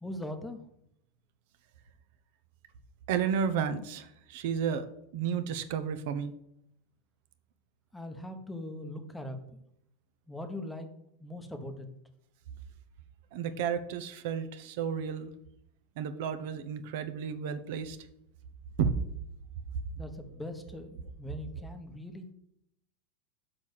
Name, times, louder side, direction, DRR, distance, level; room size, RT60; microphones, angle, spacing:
voice 1, 0.0-0.6 7.9-9.4 10.3-10.9 11.2-11.9 19.9-22.3, left 1 dB, 5° left, 6 dB, 0.9 m, -40 dB
voice 2, 3.1-4.9 5.1-6.3 13.3-15.3 16.0-18.0 18.8-18.9, right 7 dB, 65° right, 11 dB, 0.9 m, -32 dB
6.5 x 5.7 x 6.6 m, 0.77 s
supercardioid pair, 150°, 0 cm